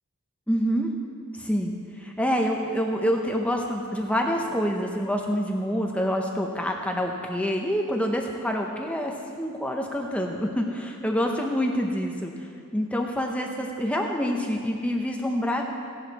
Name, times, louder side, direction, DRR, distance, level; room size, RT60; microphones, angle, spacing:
voice 1, 0.5-0.9 1.4-1.7 2.0-15.7, equal, 5° left, 1 dB, 0.7 m, -27 dB
16.0 x 11.0 x 4.1 m, 2.3 s
head